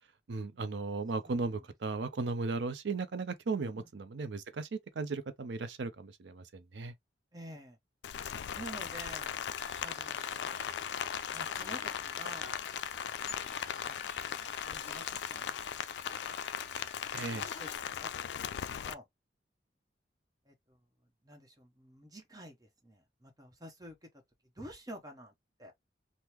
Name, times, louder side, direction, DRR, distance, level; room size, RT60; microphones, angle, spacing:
voice 1, 0.3-4.7 5.0-6.9 17.1-17.4, right 3 dB, 80° right, 0.5 m, -36 dB
voice 2, 1.2-1.6 3.7-3.9 7.3-7.8 8.5-9.4 9.8-10.9 11.3-12.6 13.4-14.0 14.6-15.5 16.0-16.3 16.7-18.3 18.7-19.0 20.5-20.8 21.2-24.1 24.6-25.3 25.6-25.7, right 1 dB, 20° right, 0.9 m, -50 dB
Rain, 8.0-18.9, left 8 dB, 70° left, 0.3 m, -38 dB
sound 1, 9.5-17.8, left 4 dB, 40° left, 1.3 m, -50 dB
3.5 x 2.1 x 2.9 m
head